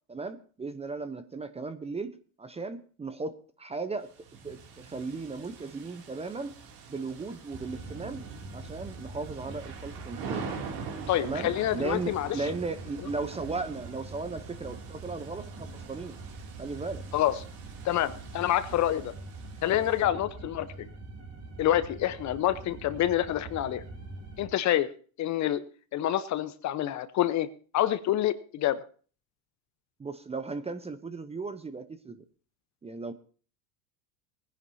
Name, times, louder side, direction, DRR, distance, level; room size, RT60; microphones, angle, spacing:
voice 1, 0.1-2.1 2.4-4.1 4.4-6.6 6.9-8.2 8.5-10.4 11.2-16.2 16.6-17.0 20.0-20.2 30.0-32.2 32.8-33.1, right 3 dB, 15° right, 11 dB, 0.7 m, -36 dB
sound 1, 4.0-20.0, right 5 dB, 50° right, 2.7 m, -45 dB
sound 2, 7.5-24.5, right 3 dB, 35° right, 3.2 m, -44 dB
voice 2, 11.1-12.3 17.1-17.3 17.8-19.1 19.6-20.9 21.6-23.8 24.4-24.9 25.2-25.6 25.9-27.5 27.7-28.8, left 12 dB, 40° left, 14 dB, 0.8 m, -27 dB
19.5 x 10.0 x 2.7 m, 0.40 s
supercardioid pair, 110°, 45 cm